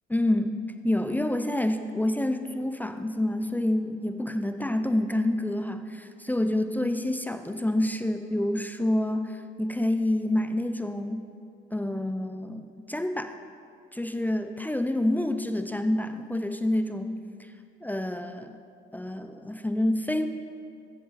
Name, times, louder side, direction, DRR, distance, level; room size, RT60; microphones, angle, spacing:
voice 1, 0.1-0.5 0.8-11.2 11.7-13.4 13.9-17.5 17.8-18.6 18.9-20.3, left 1 dB, 10° left, 8 dB, 0.5 m, -28 dB
14.5 x 7.4 x 4.1 m, 2.4 s
cardioid pair, 90°, 20 cm